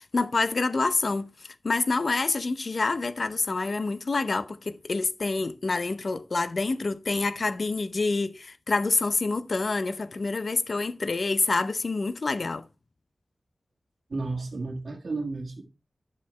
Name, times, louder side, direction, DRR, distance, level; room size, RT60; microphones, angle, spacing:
voice 1, 0.0-12.6, left 3 dB, 55° left, 0.6 m, -27 dB
voice 2, 14.1-15.6, right 3 dB, 70° right, 1.6 m, -32 dB
11.0 x 7.3 x 3.2 m
wide cardioid pair, 90°, 0 cm